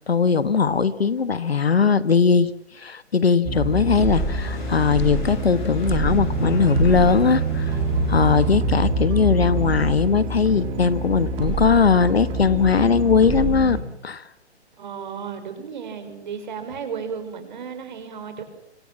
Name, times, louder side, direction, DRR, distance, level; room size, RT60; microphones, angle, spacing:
voice 1, 0.1-2.5 2.8-7.7 8.1-13.8 14.0-14.2, left 5 dB, 60° left, 16 dB, 1.4 m, -19 dB
sound 1, 3.4-13.8, right 3 dB, 15° right, 3.0 m, -25 dB
sound 2, 3.5-8.7, left 3 dB, 45° left, 7.9 m, -39 dB
Run, 5.2-12.2, equal, 80° left, 4.9 m, -33 dB
voice 2, 14.8-18.4, right 6 dB, 45° right, 8 dB, 5.3 m, -34 dB
26.0 x 24.0 x 7.3 m, 0.74 s
figure-of-eight pair, 130°, 34 cm